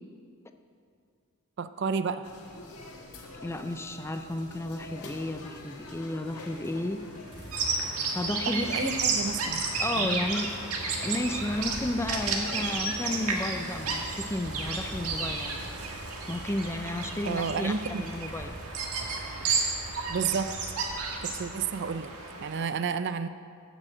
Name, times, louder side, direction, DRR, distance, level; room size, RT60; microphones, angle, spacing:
voice 1, 1.6-2.3 8.3-9.6 10.0-10.2 17.3-18.1 20.1-20.5 21.2-22.1 22.4-23.3, right 5 dB, 50° right, 12 dB, 0.4 m, -31 dB
sound 1, 2.2-13.9, left 2 dB, 85° left, 1.5 m, -45 dB
voice 2, 3.4-7.1 8.1-8.9 9.8-10.5 11.0-15.6 16.3-18.5, left 1 dB, 10° left, 7 dB, 0.4 m, -32 dB
sound 2, 6.6-22.6, right 1 dB, 20° right, 2.3 m, -46 dB
Bird vocalization bird call bird song, 7.5-22.7, right 4 dB, 90° right, 1.5 m, -32 dB
11.0 x 6.2 x 7.8 m, 2.3 s
head